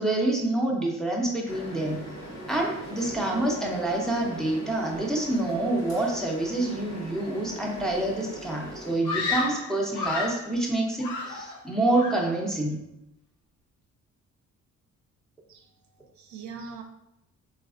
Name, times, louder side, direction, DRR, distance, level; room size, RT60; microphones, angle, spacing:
voice 1, 0.0-2.0 2.5-12.8, right 2 dB, ahead, -2 dB, 0.5 m, -27 dB
sound 1, 1.5-8.9, equal, 60° left, 1.2 m, -40 dB
Screaming, 9.0-10.5 11.0-11.7 11.9-12.4, left 4 dB, 85° left, 0.6 m, -31 dB
voice 2, 15.5-16.8, right 5 dB, 70° right, 5 dB, 0.5 m, -43 dB
3.3 x 2.4 x 2.4 m, 0.86 s
cardioid pair, 90°, 30 cm